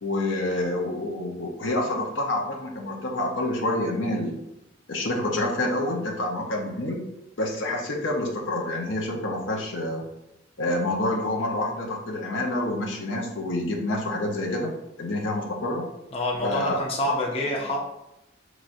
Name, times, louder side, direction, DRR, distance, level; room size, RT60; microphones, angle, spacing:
voice 1, 0.0-4.4 4.9-7.0 7.4-10.0 10.6-14.7 15.0-15.9 16.4-16.8 17.1-17.2 17.6-17.7, left 1 dB, 80° left, 0 dB, 0.8 m, -27 dB
voice 2, 16.1-17.8, left 1 dB, 30° left, -2 dB, 0.6 m, -27 dB
6.0 x 3.1 x 2.6 m, 0.87 s
head